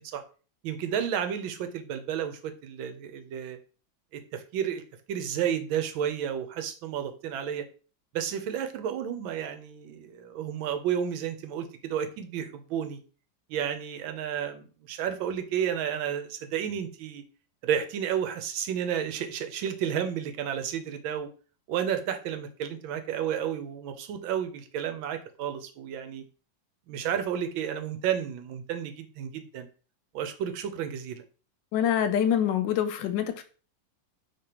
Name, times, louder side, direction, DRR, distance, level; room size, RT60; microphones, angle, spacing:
voice 1, 0.6-3.6 4.1-4.8 5.1-7.6 8.1-13.0 13.5-17.2 17.6-21.3 21.7-26.2 26.9-29.7 30.1-31.2, right 9 dB, 85° right, 1.5 m, -31 dB
voice 2, 31.7-33.4, left 9 dB, 75° left, 1.2 m, -25 dB
5.1 x 3.6 x 2.8 m
omnidirectional pair, 2.1 m